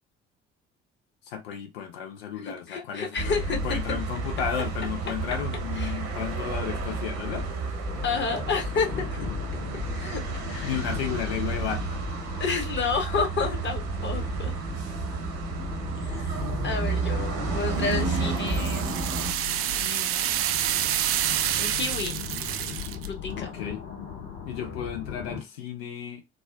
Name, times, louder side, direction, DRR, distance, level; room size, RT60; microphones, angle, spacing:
voice 1, 1.3-7.5 10.6-12.0 23.3-23.8 24.4-26.2, left 8 dB, 75° left, 0.7 m, -33 dB
voice 2, 2.4-4.0 5.8-6.0 8.0-9.1 9.9-10.7 12.4-14.5 16.0-16.3 16.6-18.9 19.7-20.4 21.6-22.1 23.1-23.5, left 4 dB, 40° left, 1.3 m, -30 dB
sound 1, 3.2-19.3, right 3 dB, 70° right, 1.2 m, -31 dB
sound 2, 7.9-25.4, left 7 dB, 60° left, 2.1 m, -39 dB
sound 3, 17.9-23.1, right 11 dB, 50° right, 0.5 m, -28 dB
4.1 x 2.4 x 2.2 m
figure-of-eight pair, 50°, 30 cm